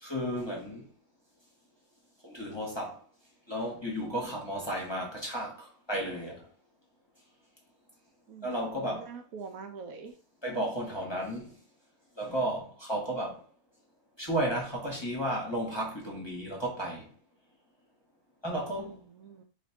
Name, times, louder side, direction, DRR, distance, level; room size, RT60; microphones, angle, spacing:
voice 1, 0.0-0.9 2.2-3.0 3.5-6.5 8.4-9.1 10.4-11.6 12.2-13.4 14.2-17.1 18.4-19.0, right 1 dB, 20° left, 1.0 m, -33 dB
voice 2, 8.3-10.2 18.8-19.4, right 5 dB, 70° right, 1.0 m, -45 dB
3.5 x 2.5 x 4.3 m
omnidirectional pair, 1.6 m